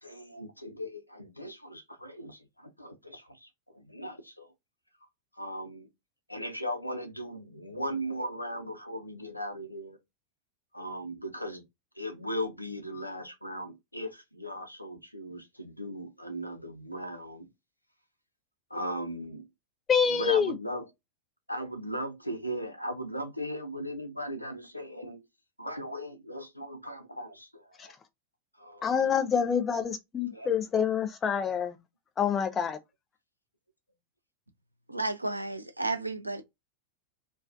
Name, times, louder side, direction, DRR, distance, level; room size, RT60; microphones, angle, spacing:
voice 1, 0.0-4.5 5.4-5.9 6.3-10.0 10.7-11.6 12.0-17.5 18.7-19.5 20.0-20.9 21.5-25.2 25.6-27.9 28.6-29.0 30.3-30.5, equal, 90° left, 0.6 m, -38 dB
voice 2, 19.9-20.6 27.8-27.9 28.8-31.8 32.2-32.8, left 7 dB, 20° left, 0.6 m, -27 dB
voice 3, 34.9-36.4, right 2 dB, 85° right, 0.5 m, -32 dB
2.3 x 2.2 x 2.5 m
figure-of-eight pair, 90°, 0 cm